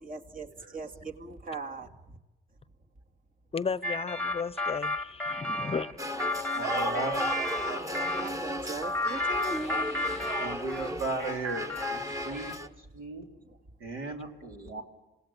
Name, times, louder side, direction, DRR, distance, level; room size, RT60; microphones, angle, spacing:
voice 1, 0.0-2.2 8.1-10.6 13.5-13.6, right 3 dB, 45° right, 2.2 m, -40 dB
voice 2, 3.5-6.0, left 5 dB, 30° left, 0.7 m, -34 dB
sound 1, 3.8-8.3 8.8-10.9 11.2-12.2, left 2 dB, 5° left, 1.2 m, -32 dB
sound 2, 6.0-12.7, equal, 15° right, 1.4 m, -35 dB
voice 3, 6.5-7.3 10.4-13.3 13.8-14.8, right 2 dB, 80° right, 3.8 m, -36 dB
sound 3, 7.3-12.6, equal, 65° right, 5.1 m, -52 dB
27.5 x 18.5 x 8.7 m
cardioid pair, 90°, 20 cm